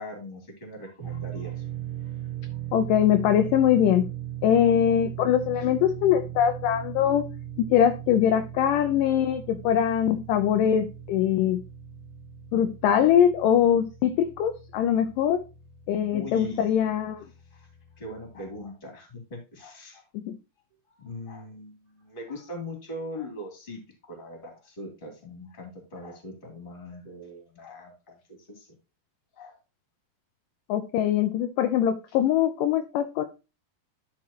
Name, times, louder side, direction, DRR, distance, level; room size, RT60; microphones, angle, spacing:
voice 1, 0.0-1.6 2.5-2.6 16.1-16.7 17.5-17.7 18.0-20.0 20.9-23.8 24.1-28.7 29.3-29.6, left 1 dB, 15° left, 1 dB, 2.3 m, -41 dB
sound 1, 1.0-18.7, right 11 dB, 60° right, 1.5 m, -39 dB
voice 2, 2.7-4.1 4.4-7.3 7.6-11.6 12.5-15.4 15.9-17.2 20.1-20.4 30.7-33.3, left 9 dB, 80° left, 8 dB, 2.0 m, -22 dB
11.5 x 4.9 x 2.9 m, 0.29 s
omnidirectional pair, 4.2 m